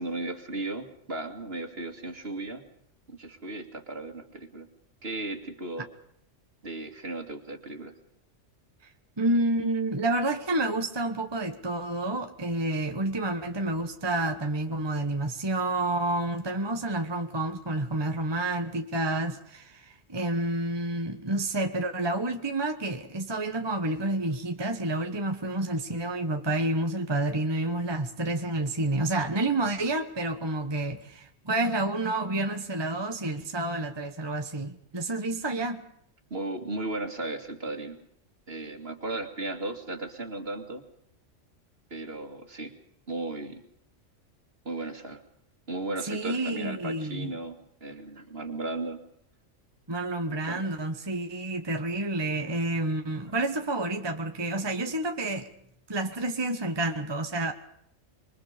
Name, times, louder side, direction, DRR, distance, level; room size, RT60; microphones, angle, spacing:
voice 1, 0.0-2.6 3.1-4.7 5.0-5.9 6.6-7.9 36.3-38.0 38.5-40.8 41.9-42.7 43.1-43.6 44.6-45.2 45.7-47.5 47.8-49.0 50.4-50.6, right 2 dB, 50° right, 2.6 m, -35 dB
voice 2, 9.2-35.8 46.1-47.3 49.9-55.5 55.9-57.5, right 2 dB, 20° right, 1.3 m, -29 dB
27.0 x 23.0 x 5.1 m
omnidirectional pair, 1.3 m